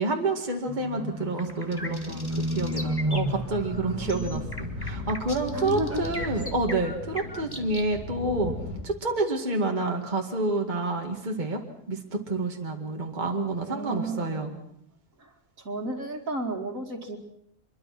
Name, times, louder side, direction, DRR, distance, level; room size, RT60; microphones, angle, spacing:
voice 1, 0.0-8.5 8.8-11.6 11.9-14.5, right 2 dB, 30° right, 2 dB, 2.2 m, -28 dB
Livestock farm animals working animals, 0.7-5.5 5.7-6.4 6.9-7.0, equal, 10° right, 1.9 m, -33 dB
sound 1, 1.4-7.9, left 1 dB, 15° left, 1.9 m, -39 dB
sound 2, 2.8-8.8, left 2 dB, 70° left, 3.4 m, -38 dB
voice 2, 3.7-4.5 5.5-6.0 6.4-6.5 13.7-14.6 15.2-15.3 15.6-17.2, right 1 dB, 60° right, 3 dB, 2.7 m, -33 dB
25.5 x 22.5 x 6.1 m, 0.74 s
omnidirectional pair, 1.6 m